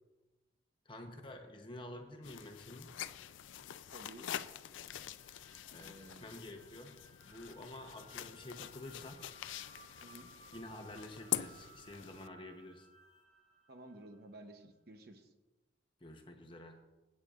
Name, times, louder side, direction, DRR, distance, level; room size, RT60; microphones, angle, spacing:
voice 1, 0.8-2.9 5.7-9.2 10.5-12.9 16.0-16.9, left 1 dB, 25° left, 4 dB, 0.9 m, -49 dB
sound 1, 2.2-12.3, left 11 dB, 85° left, 0.4 m, -45 dB
voice 2, 3.9-4.3 5.8-6.3 10.0-10.3 13.7-15.3, right 1 dB, 55° right, 6 dB, 0.9 m, -53 dB
sound 2, 5.2-14.4, right 2 dB, 75° right, 2.3 m, -62 dB
16.0 x 8.5 x 2.5 m, 1.1 s
head